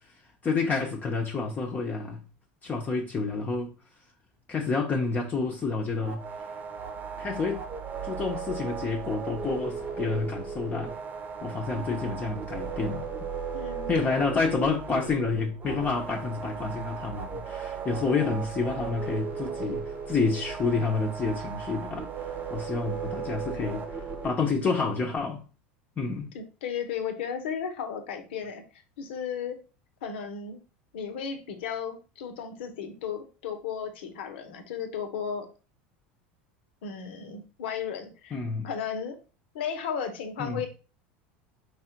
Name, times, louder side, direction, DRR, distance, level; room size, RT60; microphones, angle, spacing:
voice 1, 0.4-2.2 2.6-3.7 4.5-6.2 7.2-7.6 8.0-10.9 11.4-13.1 13.9-22.1 22.5-25.4 26.0-26.3 38.3-38.7 40.4-40.7, left 4 dB, 25° left, 0.9 m, -29 dB
sound 1, 6.0-24.3, right 6 dB, 30° right, 0.9 m, -36 dB
voice 2, 11.7-12.2 13.5-13.9 26.3-28.6 29.0-29.6 30.0-30.6 30.9-35.5 36.8-38.4 38.6-39.2 39.5-40.7, left 7 dB, 80° left, 1.0 m, -34 dB
4.8 x 2.4 x 4.5 m
supercardioid pair, 105°, 6 cm